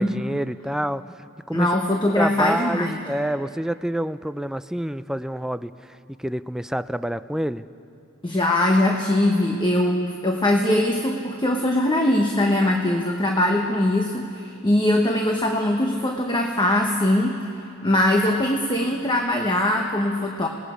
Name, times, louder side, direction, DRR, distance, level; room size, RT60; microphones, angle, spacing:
voice 1, 0.0-1.7 2.2-7.7, right 1 dB, 5° right, 12 dB, 0.4 m, -28 dB
voice 2, 1.5-3.0 8.2-17.4 17.8-20.5, left 1 dB, 20° left, 2 dB, 1.1 m, -21 dB
27.5 x 19.0 x 5.1 m, 2.4 s
head